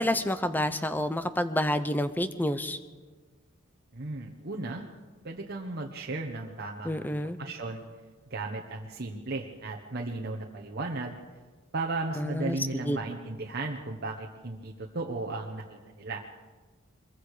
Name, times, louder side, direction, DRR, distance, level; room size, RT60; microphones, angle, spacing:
voice 1, 0.0-2.8 6.8-7.4 12.2-13.0, left 1 dB, 10° left, 11 dB, 0.8 m, -29 dB
voice 2, 3.9-4.8 5.2-7.8 8.3-11.2 11.7-16.2, right 3 dB, 50° right, 0 dB, 1.3 m, -35 dB
23.5 x 22.0 x 5.0 m, 1.4 s
head